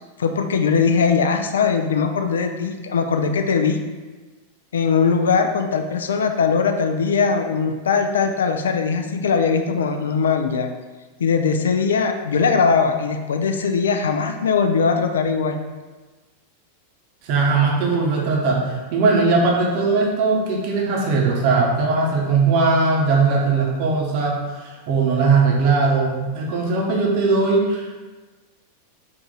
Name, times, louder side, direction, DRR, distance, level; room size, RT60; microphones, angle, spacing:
voice 1, 0.2-3.8 4.7-10.7 11.2-15.6, left 5 dB, 65° left, 6 dB, 0.3 m, -20 dB
voice 2, 17.2-28.0, right 4 dB, 45° right, -2 dB, 0.7 m, -19 dB
3.8 x 2.4 x 3.7 m, 1.3 s
figure-of-eight pair, 90°, 0 cm